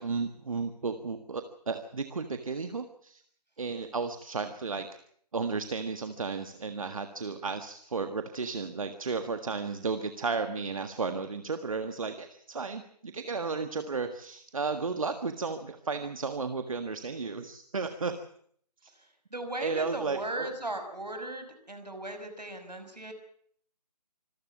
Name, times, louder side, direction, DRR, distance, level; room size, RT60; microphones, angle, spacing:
voice 1, 0.0-3.2 3.6-4.9 5.3-18.2 18.8-18.9 19.6-20.6, right 4 dB, 55° right, 8 dB, 1.6 m, -33 dB
voice 2, 19.3-23.1, right 1 dB, 75° right, 7 dB, 5.7 m, -37 dB
26.0 x 14.5 x 8.4 m, 0.63 s
figure-of-eight pair, 145°, 21 cm